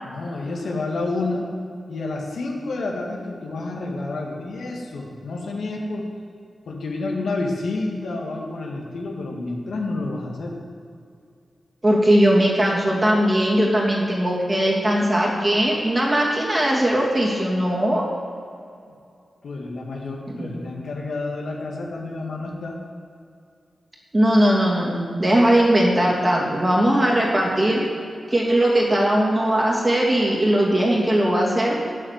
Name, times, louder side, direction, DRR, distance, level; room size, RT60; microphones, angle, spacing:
voice 1, 0.0-1.6 1.9-6.1 6.7-10.6 19.4-22.8, left 2 dB, 80° left, -1 dB, 2.0 m, -29 dB
voice 2, 11.8-18.0 20.3-20.5 24.1-27.8 28.3-31.8, right 1 dB, 25° right, -3 dB, 2.7 m, -19 dB
9.0 x 8.2 x 7.5 m, 2.4 s
wide cardioid pair, 85°, 0 cm